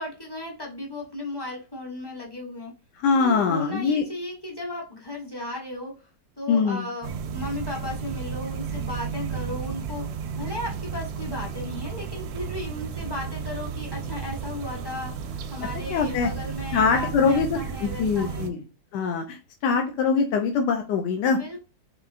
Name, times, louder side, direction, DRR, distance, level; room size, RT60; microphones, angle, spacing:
voice 1, 0.0-2.7 3.2-6.0 6.4-10.0 10.3-18.5 21.3-21.6, left 1 dB, 20° left, -2 dB, 0.7 m, -35 dB
voice 2, 3.0-4.0 6.5-6.8 15.9-16.3 16.7-18.6 18.9-21.4, left 5 dB, 75° left, 3 dB, 1.1 m, -23 dB
sound 1, 7.0-18.5, right 6 dB, 70° right, 1.0 m, -33 dB
4.4 x 3.1 x 2.4 m, 0.33 s
omnidirectional pair, 2.0 m